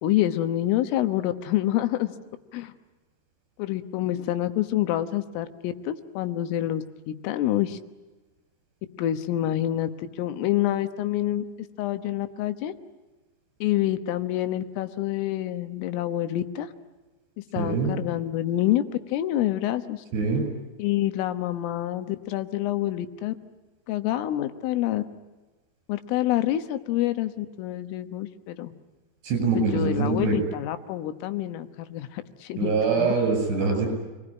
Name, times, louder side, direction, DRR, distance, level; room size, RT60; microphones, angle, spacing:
voice 1, 0.0-2.1 2.5-2.7 3.6-7.8 9.0-11.5 11.8-12.7 13.6-16.7 17.5-18.8 19.1-20.1 20.8-23.4 23.9-25.0 25.9-28.7 29.6-33.1, left 13 dB, 85° left, 10 dB, 3.8 m, -27 dB
voice 2, 17.6-17.9 20.1-20.4 29.2-30.4 32.6-33.9, right 4 dB, 55° right, 3 dB, 9.6 m, -24 dB
28.5 x 21.0 x 9.9 m, 1.2 s
omnidirectional pair, 5.7 m